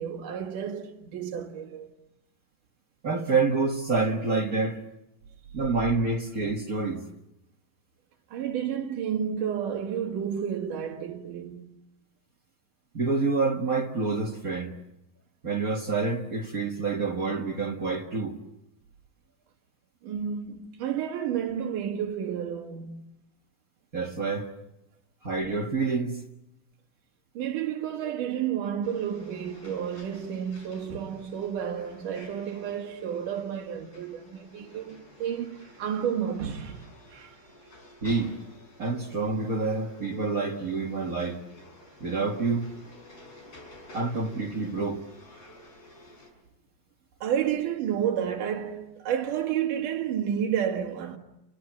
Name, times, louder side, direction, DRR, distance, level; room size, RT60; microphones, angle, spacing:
voice 1, 0.0-1.9 8.3-11.7 20.0-23.0 27.3-37.4 47.2-51.2, right 9 dB, 65° right, 3.5 m, -31 dB
voice 2, 3.0-4.8 5.5-7.0 12.9-14.7 15.4-18.4 23.9-24.5 25.2-26.2 38.0-38.4 38.8-41.4 42.0-42.7 43.9-45.0, right 4 dB, 40° right, 1.3 m, -27 dB
sound 1, 28.8-46.3, left 1 dB, 45° left, 6.9 m, -52 dB
29.0 x 23.0 x 7.3 m
omnidirectional pair, 4.0 m